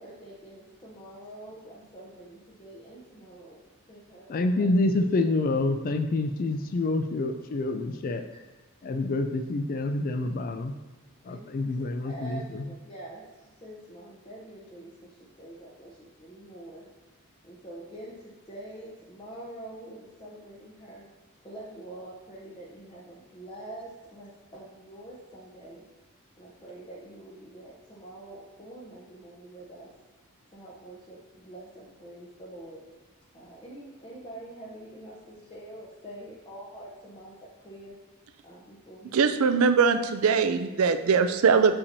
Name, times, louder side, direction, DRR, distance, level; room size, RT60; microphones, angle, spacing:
voice 1, 0.0-3.6 3.9-4.7 8.3-8.4 11.3-16.8 17.4-21.1 21.4-25.8 26.4-29.9 30.5-32.8 33.3-37.4 37.6-37.9 38.4-39.2, right 1 dB, 25° left, -7 dB, 0.8 m, -45 dB
voice 2, 4.3-8.3 8.8-10.7 11.3-12.6, left 2 dB, 40° left, 8 dB, 0.3 m, -27 dB
voice 3, 39.1-41.7, right 5 dB, 75° right, 10 dB, 0.4 m, -21 dB
6.6 x 5.6 x 2.7 m, 1.2 s
head